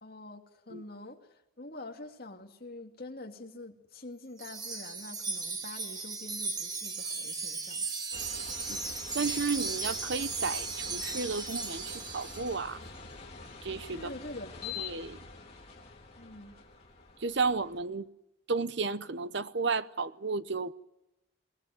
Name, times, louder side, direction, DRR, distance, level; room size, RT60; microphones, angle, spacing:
voice 1, 0.0-7.9 14.0-15.0 16.2-16.5, left 2 dB, 45° left, 2.5 m, -46 dB
Wind chime, 4.4-12.6, right 4 dB, 20° right, 1.4 m, -36 dB
sound 1, 8.1-17.8, left 5 dB, 30° left, 3.0 m, -46 dB
voice 2, 9.1-12.8 13.6-14.1 14.8-15.2 17.2-18.1 18.5-20.7, right 4 dB, 55° right, 0.8 m, -33 dB
22.0 x 19.0 x 9.2 m
head